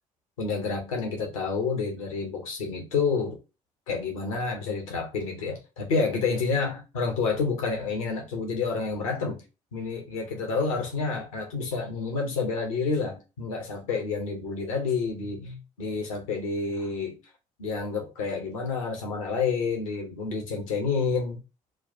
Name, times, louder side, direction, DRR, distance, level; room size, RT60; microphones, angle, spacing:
voice 1, 0.4-3.4 3.9-9.4 9.7-17.2 17.6-21.4, left 4 dB, 80° left, 0.9 m, -29 dB
6.2 x 2.3 x 2.6 m
figure-of-eight pair, 45°, 18 cm